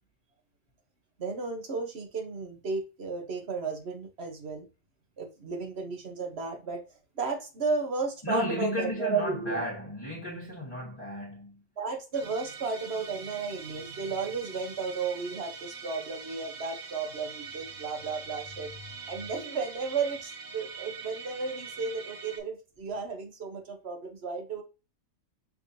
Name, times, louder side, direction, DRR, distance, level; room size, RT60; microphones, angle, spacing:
voice 1, 1.2-4.7 5.2-6.8 7.2-9.6 11.8-18.7 19.1-24.6, right 4 dB, 50° right, 1.2 m, -33 dB
voice 2, 8.2-11.6, left 1 dB, 20° left, 1.4 m, -33 dB
Musical instrument, 12.1-22.4, right 5 dB, 85° right, 1.4 m, -43 dB
5.9 x 3.4 x 2.7 m
omnidirectional pair, 1.5 m